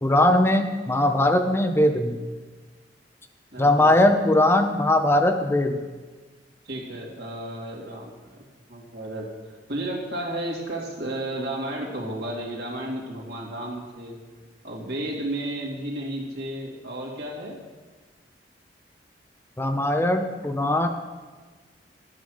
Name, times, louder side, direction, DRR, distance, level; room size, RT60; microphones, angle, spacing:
voice 1, 0.0-2.2 3.6-5.8 19.6-20.9, left 1 dB, 15° left, 5 dB, 0.7 m, -20 dB
voice 2, 3.5-4.2 6.6-8.4 8.7-9.2 9.7-14.2 14.6-17.6, right 1 dB, 65° right, -2 dB, 2.8 m, -33 dB
12.5 x 8.6 x 6.5 m, 1.4 s
head